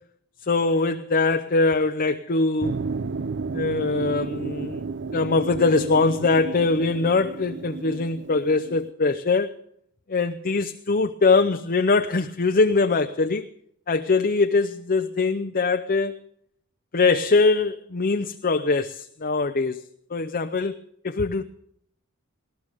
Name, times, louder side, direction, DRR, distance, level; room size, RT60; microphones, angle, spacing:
voice 1, 0.4-2.8 3.5-4.8 5.1-9.6 10.1-13.5 13.9-16.2 16.9-19.8 20.1-20.7 21.0-21.4, left 3 dB, 40° left, 0.7 m, -22 dB
sound 1, 2.6-8.9, right 4 dB, 55° right, 0.5 m, -32 dB
19.5 x 18.5 x 3.6 m
head